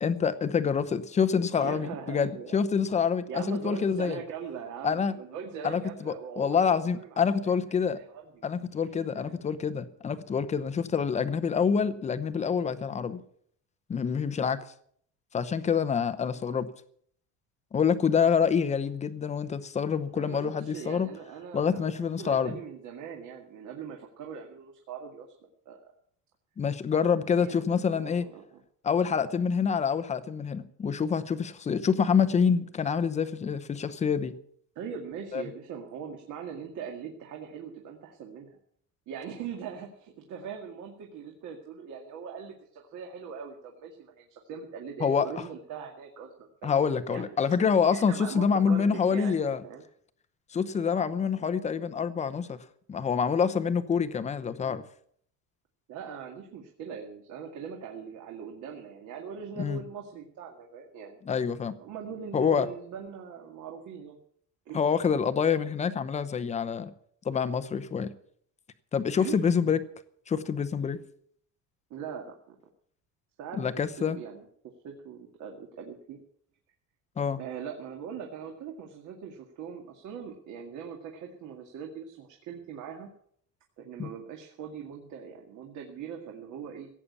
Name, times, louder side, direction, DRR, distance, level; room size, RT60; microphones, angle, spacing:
voice 1, 0.0-4.2 4.8-5.1 5.6-8.0 8.4-13.2 13.9-14.6 15.3-16.7 17.7-21.1 21.5-22.6 26.6-28.3 28.8-34.3 35.3-35.4 45.0-45.3 46.6-49.6 50.5-54.8 59.6-59.8 61.3-61.7 62.3-62.7 64.7-66.9 67.2-68.1 68.9-69.8 70.3-71.0 73.6-74.2 77.2-77.4 84.0-84.1, left 6 dB, 20° left, 0.8 m, -27 dB
voice 2, 1.5-2.5 3.3-7.2 7.4-8.4 8.9-9.2 20.1-25.3 25.7-25.9 27.2-28.6 29.0-29.2 34.8-38.6 39.1-47.4 47.9-49.8 55.9-61.2 61.8-64.2 64.7-64.8 69.2-69.5 71.9-72.6 73.4-73.7 74.2-74.4 74.8-76.2 77.4-83.1 83.8-86.9, right 7 dB, 55° right, 2.2 m, -41 dB
16.5 x 8.6 x 8.4 m
cardioid pair, 175°, 36 cm